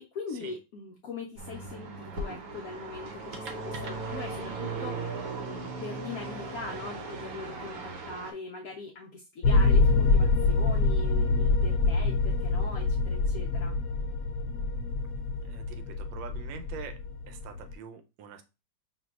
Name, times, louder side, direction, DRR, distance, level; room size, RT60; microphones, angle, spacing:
voice 1, 0.0-13.8, left 4 dB, 70° left, -1 dB, 0.8 m, -41 dB
sound 1, 1.4-8.3, right 3 dB, 65° right, 1.0 m, -37 dB
sound 2, 9.4-17.7, left 3 dB, 85° left, 1.4 m, -25 dB
voice 2, 15.4-17.0 17.3-18.4, right 7 dB, 85° right, 8 dB, 1.4 m, -44 dB
5.8 x 2.7 x 2.4 m, 0.28 s
omnidirectional pair, 2.0 m